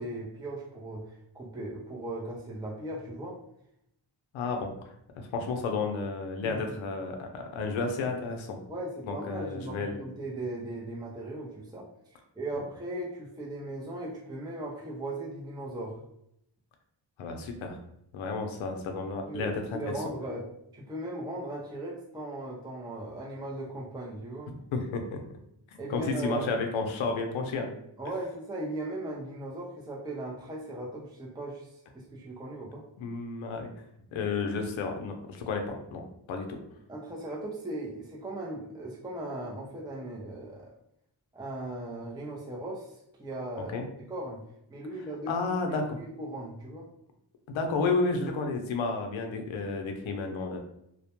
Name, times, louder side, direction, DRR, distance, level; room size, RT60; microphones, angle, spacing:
voice 1, 0.0-3.4 6.4-6.6 8.7-11.8 12.1-16.0 19.3-20.5 20.7-24.5 25.8-26.5 28.0-32.8 36.9-40.7 41.3-43.7 44.1-44.4 44.7-45.3 45.6-46.9, right 1 dB, 10° right, -5 dB, 0.5 m, -38 dB
voice 2, 4.3-4.7 5.2-8.6 9.1-10.0 17.2-17.8 18.1-19.9 24.7-25.2 25.9-27.7 33.0-33.7 34.1-36.0 36.3-36.6 43.7-43.8 45.3-46.0 47.5-50.6, left 4 dB, 80° left, 4 dB, 0.6 m, -31 dB
2.2 x 2.1 x 2.8 m, 0.77 s
cardioid pair, 70°, 47 cm